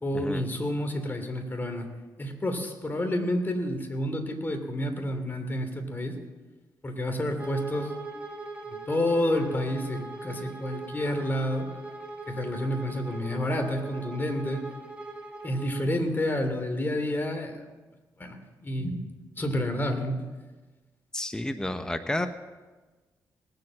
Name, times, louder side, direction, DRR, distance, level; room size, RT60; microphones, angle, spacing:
voice 1, 0.0-1.9 2.2-6.1 6.8-7.9 8.6-11.7 12.3-14.6 15.4-17.6 18.2-19.0 19.4-20.2, left 1 dB, 25° left, 5 dB, 2.8 m, -29 dB
Bowed string instrument, 7.4-15.9, right 2 dB, 15° right, 2.1 m, -41 dB
voice 2, 21.1-22.3, left 1 dB, 10° left, 8 dB, 0.9 m, -30 dB
19.0 x 7.9 x 7.4 m, 1.3 s
cardioid pair, 70°, 7 cm